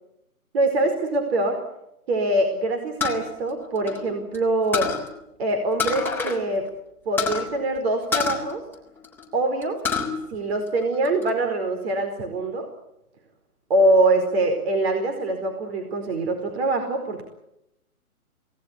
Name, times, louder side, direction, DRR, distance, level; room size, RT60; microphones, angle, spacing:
voice 1, 0.5-1.6 2.1-5.0 5.4-6.7 7.0-8.6 9.3-9.8 10.3-12.7 13.7-17.2, right 2 dB, 45° right, 4 dB, 4.8 m, -23 dB
sound 1, 3.0-4.4 4.7-5.1 5.8-6.4 6.7-6.8 7.2-7.5 8.1-9.2 9.6-10.1 10.5-11.3, left 6 dB, 5° left, 3.8 m, -27 dB
27.5 x 19.0 x 8.4 m, 0.83 s
hypercardioid pair, 145°, 45 cm